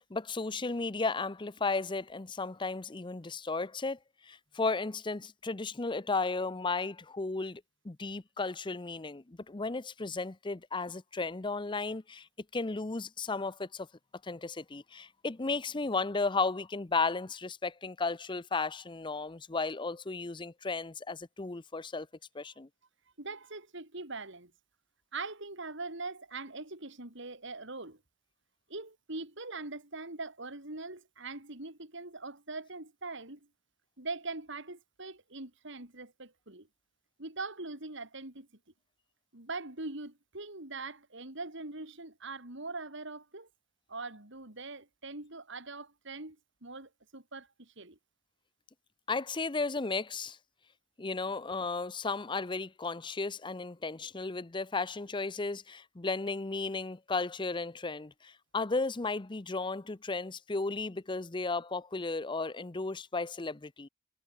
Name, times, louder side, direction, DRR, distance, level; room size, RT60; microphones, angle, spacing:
voice 1, 0.0-12.3 12.5-13.9 14.2-22.1 22.3-22.7 49.1-50.4 51.0-63.9, left 3 dB, 25° left, 0.6 m, -34 dB
voice 2, 23.2-24.5 25.1-28.0 28.7-33.5 34.0-36.7 37.2-38.5 39.3-43.5 43.9-48.0 51.3-51.4, right 3 dB, 60° right, 3.9 m, -42 dB
head